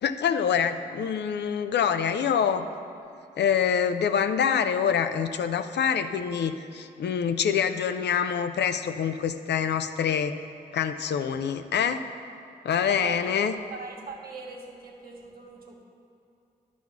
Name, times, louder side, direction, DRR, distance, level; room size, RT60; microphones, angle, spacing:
voice 1, 0.0-2.7 3.4-10.4 10.7-12.0 12.6-13.5, left 7 dB, 75° left, 10 dB, 0.5 m, -25 dB
voice 2, 12.8-15.8, right 4 dB, 60° right, -1 dB, 1.4 m, -41 dB
10.5 x 4.1 x 7.2 m, 2.7 s
supercardioid pair, 40°, 18 cm